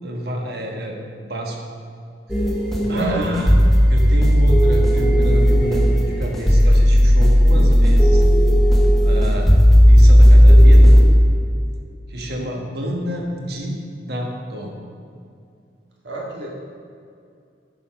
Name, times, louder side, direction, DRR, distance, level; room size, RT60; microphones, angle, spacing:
voice 1, 0.0-1.6 2.3-2.5 2.9-3.5 3.9-8.2 9.0-9.5 9.9-11.0 12.1-14.7, equal, 65° right, 1 dB, 1.3 m, -28 dB
sound 1, 2.3-11.0, equal, ahead, 1.2 m, -13 dB
voice 2, 2.8-3.3 16.0-16.5, right 2 dB, 80° right, -3 dB, 2.1 m, -28 dB
9.3 x 6.1 x 5.5 m, 2.3 s
head